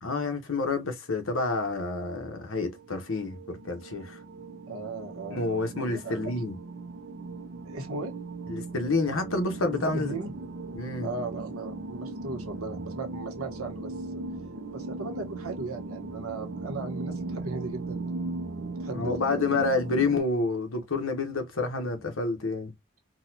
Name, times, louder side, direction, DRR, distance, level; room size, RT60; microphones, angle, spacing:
voice 1, 0.0-4.2 5.3-6.5 8.5-10.1 10.7-11.1 18.9-22.7, left 3 dB, 70° left, 1.0 m, -29 dB
sound 1, 2.5-20.2, right 3 dB, 50° right, 0.5 m, -38 dB
voice 2, 4.7-5.4 5.7-6.2 7.6-8.1 9.7-10.3 11.0-14.2 14.7-18.0 18.7-19.6, right 3 dB, 85° right, 1.1 m, -37 dB
4.0 x 2.3 x 2.7 m
head